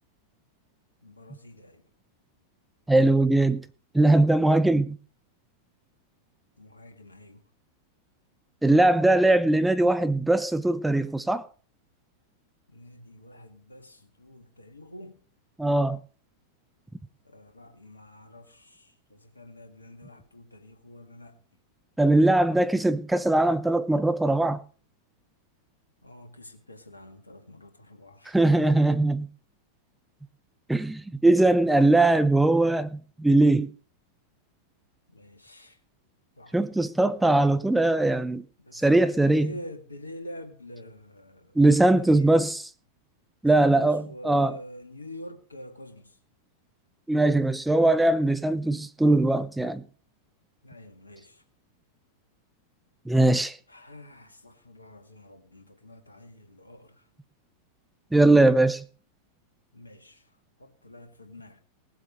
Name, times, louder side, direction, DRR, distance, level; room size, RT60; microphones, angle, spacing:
voice 1, 1.0-1.8 6.6-7.4 12.7-15.2 17.2-21.4 26.0-28.4 35.1-35.8 36.4-36.6 38.6-42.4 43.5-46.2 50.6-51.4 53.7-57.0 59.7-60.2 60.6-61.6, left 1 dB, 80° left, 2.0 m, -46 dB
voice 2, 2.9-3.6 3.9-5.0 8.6-11.4 15.6-16.0 22.0-24.6 28.3-29.3 30.7-33.7 36.5-38.4 38.7-39.5 41.6-42.7 43.4-44.6 47.1-49.8 53.1-53.6 58.1-58.8, right 2 dB, 5° right, 0.7 m, -21 dB
18.5 x 8.0 x 5.1 m
figure-of-eight pair, 90°, 0 cm